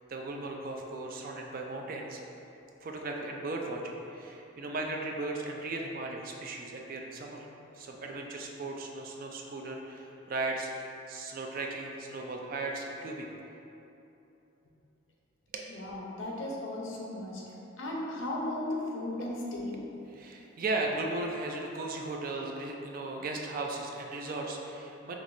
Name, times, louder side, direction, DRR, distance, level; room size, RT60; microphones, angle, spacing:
voice 1, 0.1-2.2 2.8-7.5 7.7-13.3 15.5-15.6 19.2-19.3 20.1-25.1, right 2 dB, 45° right, 1 dB, 0.3 m, -36 dB
voice 2, 15.7-17.4 17.8-19.8, left 1 dB, 65° left, -3 dB, 0.7 m, -36 dB
5.0 x 3.0 x 2.6 m, 2.9 s
head